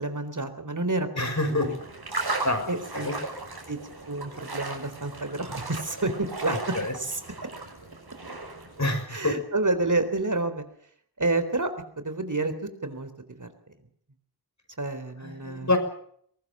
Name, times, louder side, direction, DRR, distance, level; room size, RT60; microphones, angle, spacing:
voice 1, 0.0-1.1 1.5-1.8 2.7-3.1 3.7-3.8 4.1-6.6 6.9-7.2 9.1-10.6 11.2-12.5 12.8-13.1 13.4-13.5 14.8-15.7, right 2 dB, 55° right, 10 dB, 3.8 m, -29 dB
voice 2, 1.2-1.7 2.4-2.6 2.9-3.1 6.5-6.9 8.8-9.3 15.2-15.8, left 2 dB, 50° left, 6 dB, 6.3 m, -27 dB
sound 1, 1.3-8.9, right 2 dB, 85° right, 6.2 m, -36 dB
23.0 x 19.5 x 7.6 m, 0.64 s
wide cardioid pair, 55°, 37 cm